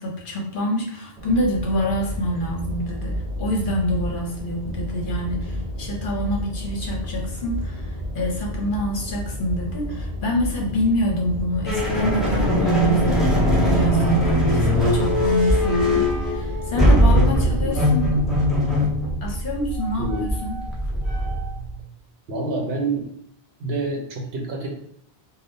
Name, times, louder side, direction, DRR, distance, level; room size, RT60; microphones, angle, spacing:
voice 1, 0.0-18.2 19.2-20.6, left 1 dB, 55° left, 0 dB, 0.8 m, -26 dB
sound 1, 1.2-18.6, equal, 50° right, 0.6 m, -31 dB
sound 2, 11.7-21.8, equal, ahead, 0.6 m, -20 dB
voice 2, 22.3-23.1 23.6-24.7, right 2 dB, 70° right, 0 dB, 1.0 m, -27 dB
3.5 x 2.3 x 2.6 m, 0.67 s
omnidirectional pair, 1.1 m